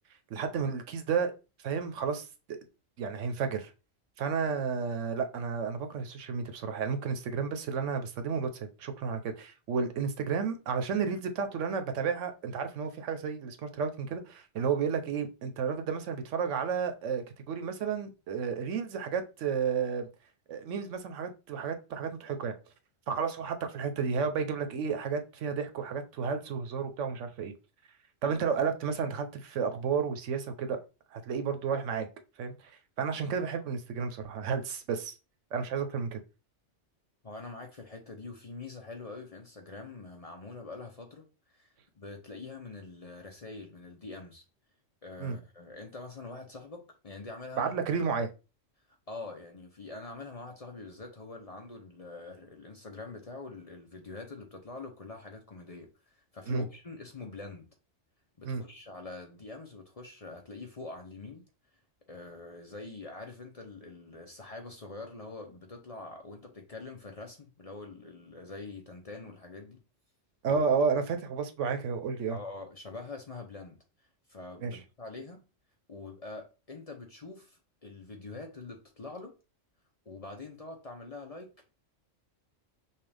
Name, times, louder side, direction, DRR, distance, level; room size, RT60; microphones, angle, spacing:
voice 1, 0.3-1.3 1.6-2.6 3.0-3.7 4.2-20.1 20.5-22.5 23.1-27.5 28.2-30.8 31.1-32.1 32.4-32.5 33.0-35.1 35.5-36.2 45.2-45.4 47.6-48.3 56.5-56.6 58.4-58.6 70.4-72.4 74.6-74.8, right 6 dB, 80° right, 1.1 m, -32 dB
voice 2, 37.2-44.4 45.0-47.8 49.1-57.7 58.4-61.4 62.1-69.8 70.5-70.7 72.3-75.4 75.9-79.3 80.1-81.5, left 3 dB, 40° left, 0.6 m, -45 dB
5.6 x 2.4 x 3.3 m
omnidirectional pair, 1.3 m